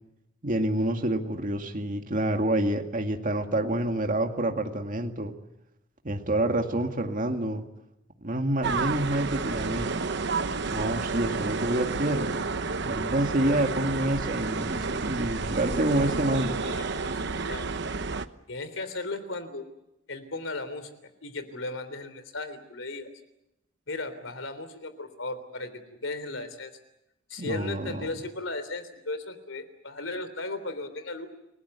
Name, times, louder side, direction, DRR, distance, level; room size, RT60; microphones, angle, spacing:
voice 1, 0.4-5.3 6.0-7.6 8.2-9.9 10.7-12.3 12.8-16.5 27.4-28.1, right 1 dB, 45° right, 4 dB, 2.2 m, -27 dB
sound 1, 8.6-18.3, right 4 dB, 60° right, 1.0 m, -30 dB
voice 2, 16.6-17.2 17.5-17.7 18.5-19.7 20.1-23.1 23.9-26.7 27.3-31.3, left 2 dB, 80° left, 12 dB, 3.5 m, -36 dB
29.5 x 19.0 x 8.3 m, 0.88 s
head